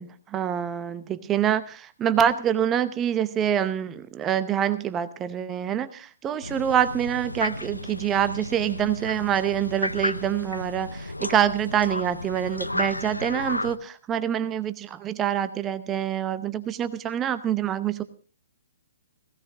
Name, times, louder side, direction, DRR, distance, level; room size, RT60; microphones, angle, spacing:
voice 1, 0.0-18.0, right 9 dB, 20° right, 13 dB, 0.6 m, -26 dB
sound 1, 6.4-13.8, left 1 dB, 85° left, 0.6 m, -33 dB
19.0 x 16.0 x 2.6 m, 0.41 s
figure-of-eight pair, 120°, 0 cm